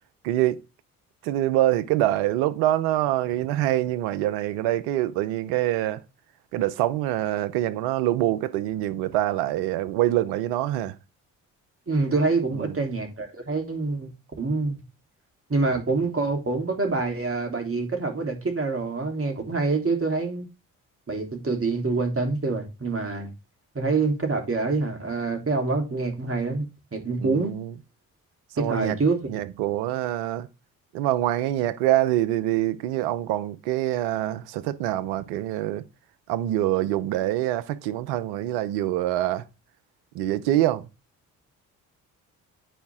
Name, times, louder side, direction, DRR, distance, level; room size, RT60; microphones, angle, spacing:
voice 1, 0.2-0.6 1.2-6.0 6.5-11.0 12.5-12.8 27.2-27.7 28.5-29.0 29.3-30.5 30.9-35.8 36.3-39.5 40.1-40.9, right 14 dB, 80° right, 0.8 m, -25 dB
voice 2, 11.9-14.1 14.4-14.8 15.5-20.5 21.1-23.3 23.7-26.7 26.9-27.5 28.6-29.2, right 3 dB, 35° right, 3.3 m, -26 dB
9.2 x 5.0 x 3.6 m
hypercardioid pair, 45°, 39 cm